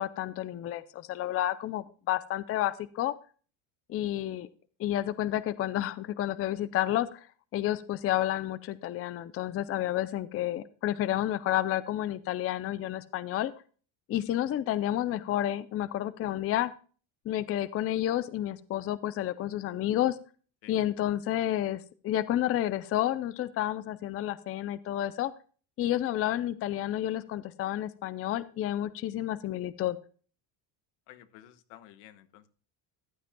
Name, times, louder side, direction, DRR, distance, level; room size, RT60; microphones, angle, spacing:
voice 1, 0.0-3.2 3.9-4.5 4.8-7.3 7.5-13.5 14.1-16.7 17.3-20.2 20.7-25.3 25.8-30.0, left 13 dB, 30° left, 16 dB, 0.4 m, -30 dB
voice 2, 31.1-32.5, left 13 dB, 85° left, 11 dB, 1.3 m, -52 dB
14.5 x 10.0 x 2.2 m, 0.40 s
cardioid pair, 140°, 48 cm